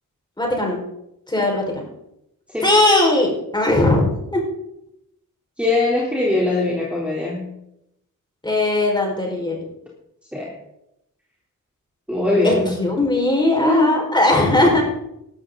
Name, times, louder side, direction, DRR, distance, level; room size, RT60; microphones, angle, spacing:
voice 1, 0.4-0.8 1.3-1.8 2.6-4.4 8.4-9.6 12.4-14.8, left 2 dB, 15° left, -1 dB, 5.3 m, -19 dB
voice 2, 5.6-7.5 10.3-10.5 12.1-12.7 13.6-14.0, left 2 dB, 5° right, -4 dB, 3.7 m, -20 dB
16.0 x 13.0 x 4.0 m, 0.81 s
wide cardioid pair, 105°, 33 cm